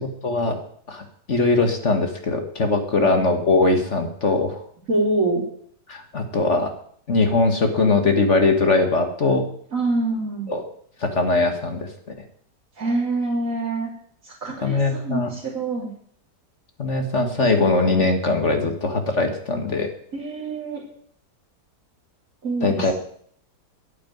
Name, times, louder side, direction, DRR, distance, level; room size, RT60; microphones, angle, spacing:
voice 1, 0.2-0.6 0.9-1.0 1.3-4.6 5.9-6.7 7.1-9.4 10.5-10.6 11.0-11.9 14.6-15.3 16.8-19.9 22.6-22.9, left 3 dB, 45° left, 5 dB, 1.9 m, -21 dB
voice 2, 4.9-5.4 9.7-10.5 12.8-13.9 14.2-15.9 20.1-20.8 22.4-22.9, right 2 dB, 50° right, -6 dB, 3.9 m, -25 dB
11.0 x 9.5 x 9.3 m, 0.62 s
omnidirectional pair, 1.8 m